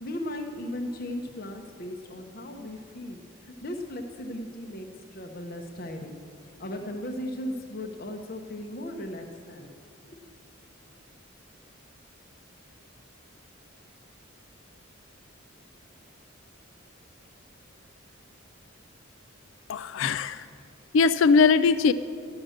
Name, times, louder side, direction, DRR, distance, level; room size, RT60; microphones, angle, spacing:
voice 1, 0.0-6.2 6.6-9.8 10.1-10.2, left 1 dB, 45° left, 4 dB, 0.8 m, -37 dB
voice 2, 19.7-20.5 20.9-21.9, left 5 dB, 70° left, 14 dB, 0.4 m, -20 dB
12.5 x 6.4 x 7.7 m, 2.4 s
head